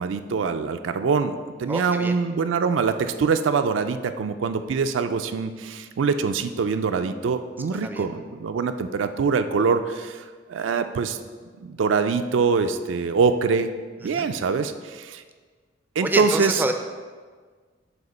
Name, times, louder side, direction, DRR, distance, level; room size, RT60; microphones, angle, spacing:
voice 1, 0.0-10.2 10.5-11.2 11.6-13.7 14.0-15.2 16.0-16.6, right 5 dB, 80° right, 9 dB, 0.4 m, -24 dB
voice 2, 1.7-2.2 7.7-8.1 14.0-14.3 16.0-16.7, right 2 dB, 10° right, 6 dB, 0.4 m, -27 dB
7.7 x 2.9 x 5.4 m, 1.5 s
head